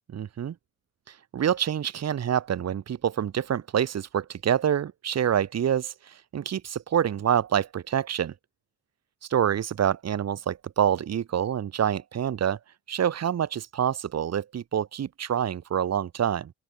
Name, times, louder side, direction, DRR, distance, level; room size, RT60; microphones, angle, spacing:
voice 1, 0.1-0.5 1.1-8.3 9.3-12.6 12.9-16.5, right 9 dB, 60° right, 3.6 m, -27 dB
open air
cardioid pair, 90°, 30 cm